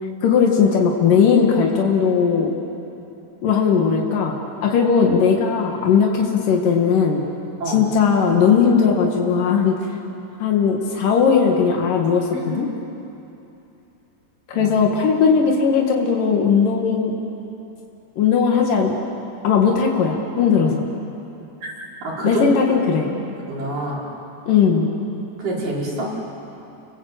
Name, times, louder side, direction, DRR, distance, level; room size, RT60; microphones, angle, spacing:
voice 1, 0.2-2.5 3.4-7.2 7.7-9.8 10.4-12.7 14.5-17.2 18.2-18.9 19.4-20.8 22.2-23.1 24.5-24.9, left 6 dB, 90° left, 1 dB, 3.5 m, -18 dB
voice 2, 22.0-22.5 23.0-23.1 23.5-24.0 25.4-26.1, right 2 dB, 85° right, -5 dB, 6.9 m, -26 dB
30.0 x 21.5 x 8.2 m, 2.8 s
omnidirectional pair, 3.7 m